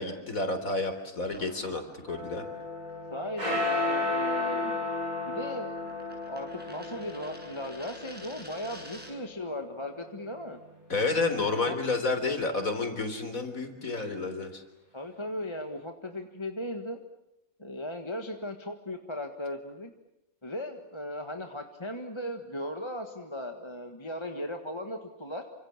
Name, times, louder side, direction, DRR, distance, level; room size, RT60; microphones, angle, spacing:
voice 1, 0.0-2.4 10.9-14.6, left 3 dB, 75° left, 7 dB, 4.0 m, -30 dB
sound 1, 1.2-9.3, equal, 5° right, 8.0 m, -51 dB
sound 2, 2.1-10.6, left 2 dB, 90° right, 8.6 m, -34 dB
voice 2, 3.1-4.8 5.2-5.7 6.3-10.6 11.7-11.8 14.9-17.0 17.6-19.9 20.4-25.4, left 1 dB, 20° left, 5 dB, 1.6 m, -37 dB
28.5 x 26.0 x 7.4 m, 0.85 s
omnidirectional pair, 1.5 m